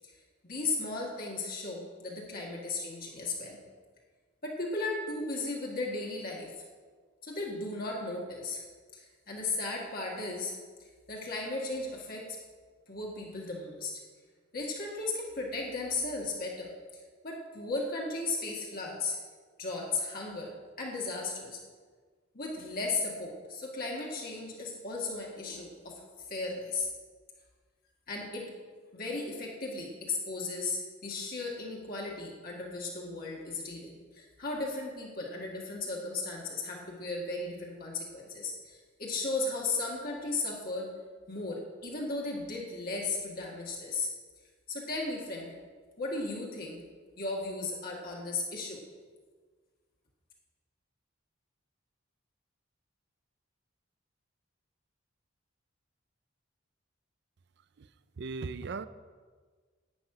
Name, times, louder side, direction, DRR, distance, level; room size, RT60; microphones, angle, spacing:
voice 1, 0.4-3.6 4.4-6.5 7.2-8.6 8.9-10.6 11.1-12.4 12.9-13.9 14.5-16.7 17.2-19.2 19.6-20.5 20.8-21.6 22.3-26.0 26.3-26.9 28.1-28.6 28.9-40.9 41.3-44.1 44.7-45.5 46.0-46.8 47.2-48.8, left 3 dB, 45° left, 1.7 m, -35 dB
voice 2, 58.2-58.9, right 4 dB, 55° right, 0.5 m, -37 dB
11.5 x 5.5 x 8.9 m
head